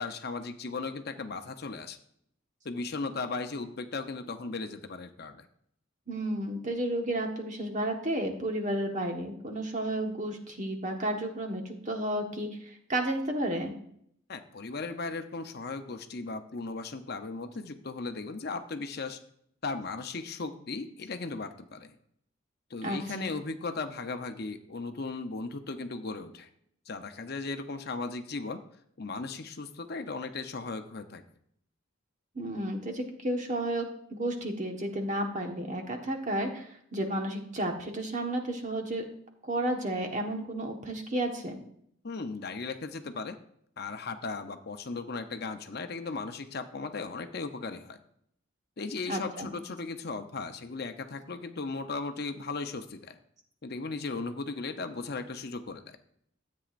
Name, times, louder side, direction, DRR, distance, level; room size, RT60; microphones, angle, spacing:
voice 1, 0.0-2.0 2.6-5.4 14.3-19.2 19.6-21.9 22.7-26.5 26.9-28.6 29.0-31.2 42.0-43.4 43.8-48.0 48.8-53.2 53.6-56.0, left 3 dB, 55° left, 7 dB, 0.7 m, -37 dB
voice 2, 6.1-13.7 22.8-23.3 32.3-39.0 39.4-41.6 49.1-49.5, right 1 dB, 40° right, 2 dB, 1.4 m, -32 dB
13.5 x 8.4 x 2.5 m, 0.67 s
head